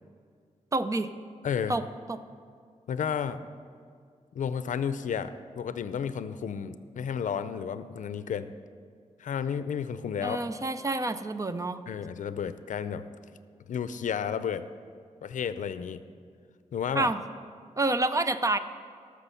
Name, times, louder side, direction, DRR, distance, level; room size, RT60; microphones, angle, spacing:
voice 1, 0.7-1.1 1.7-2.2 10.2-11.8 16.9-17.2 17.8-18.6, right 2 dB, 25° right, 11 dB, 0.5 m, -28 dB
voice 2, 1.4-1.8 2.9-3.4 4.3-8.5 9.2-10.4 11.9-13.1 13.7-14.7 15.2-16.0 16.7-17.1, left 7 dB, 75° left, 13 dB, 0.5 m, -32 dB
13.5 x 6.4 x 5.7 m, 2.1 s
wide cardioid pair, 95°, 13 cm